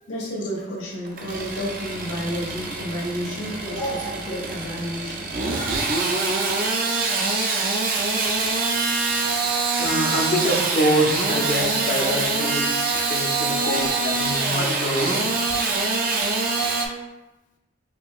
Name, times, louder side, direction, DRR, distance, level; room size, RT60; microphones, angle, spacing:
voice 1, 0.1-5.3 9.4-9.5 13.6-14.1, equal, 90° left, -6 dB, 1.1 m, -30 dB
Engine starting / Sawing, 1.1-16.9, right 3 dB, 45° right, 0.4 m, -24 dB
voice 2, 9.8-15.2, equal, 40° left, 1 dB, 0.5 m, -25 dB
4.9 x 2.7 x 2.4 m, 1.0 s
head